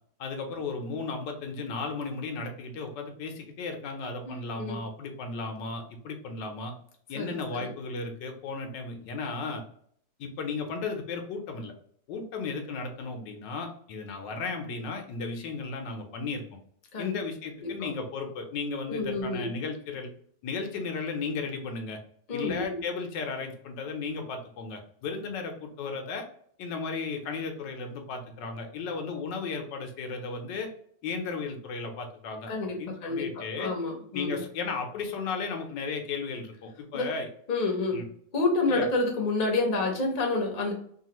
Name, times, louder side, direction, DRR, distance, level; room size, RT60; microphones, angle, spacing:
voice 1, 0.2-6.7 7.1-9.6 10.2-11.7 12.1-16.4 17.0-20.1 20.4-22.0 22.3-26.3 26.6-30.7 31.0-32.5 32.8-33.7 34.1-37.3 37.9-38.1 38.7-38.9, left 4 dB, 85° left, 4 dB, 1.3 m, -35 dB
voice 2, 4.2-4.8 7.1-7.7 16.9-17.2 17.6-17.9 18.9-19.5 22.3-22.8 32.5-34.4 36.9-37.1 37.5-38.0 38.3-40.7, left 3 dB, 40° left, 0 dB, 0.6 m, -29 dB
3.2 x 2.3 x 2.9 m, 0.62 s
omnidirectional pair, 1.9 m